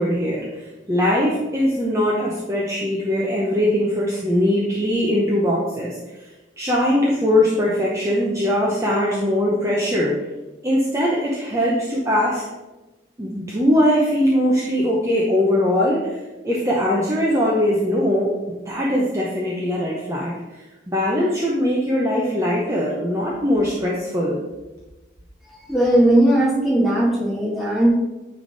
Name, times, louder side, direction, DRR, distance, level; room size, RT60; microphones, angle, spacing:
voice 1, 0.0-6.3 6.6-10.1 10.6-12.4 13.2-24.4, left 1 dB, 15° right, -4 dB, 0.8 m, -21 dB
voice 2, 25.7-27.9, right 1 dB, ahead, -6 dB, 1.5 m, -17 dB
9.6 x 3.4 x 4.0 m, 1.1 s
head